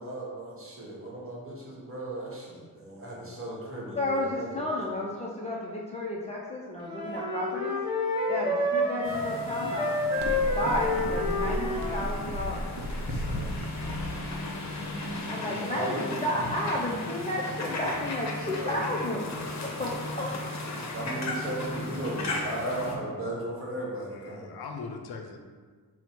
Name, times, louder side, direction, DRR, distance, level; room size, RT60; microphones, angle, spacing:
voice 1, 0.0-4.7 7.0-7.1 8.4-8.5 13.0-13.8 15.2-16.2 18.4-19.0 20.9-24.5, right 1 dB, 35° right, -4 dB, 1.0 m, -36 dB
voice 2, 3.9-7.8 8.3-9.9 10.4-12.7 15.3-19.3 19.8-20.3, left 1 dB, 20° left, -5 dB, 0.4 m, -32 dB
sound 1, 6.8-12.0, left 1 dB, 15° right, 0.8 m, -29 dB
sound 2, 9.0-23.0, left 2 dB, 50° left, 0.7 m, -36 dB
sound 3, 10.2-15.2, equal, 55° right, 0.5 m, -35 dB
voice 3, 14.5-15.0 24.3-25.4, left 4 dB, 85° left, 3 dB, 0.5 m, -41 dB
4.3 x 2.1 x 4.3 m, 1.5 s
wide cardioid pair, 120°, 36 cm